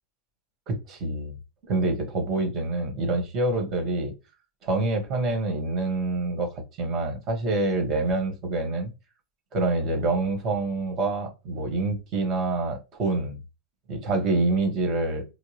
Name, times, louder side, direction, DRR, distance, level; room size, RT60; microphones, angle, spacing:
voice 1, 0.7-1.4 1.7-4.1 4.6-6.5 6.8-8.9 9.5-13.4 13.9-15.2, right 2 dB, 40° right, 1.8 m, -26 dB
4.5 x 2.2 x 3.1 m
hypercardioid pair, 95°, 0 cm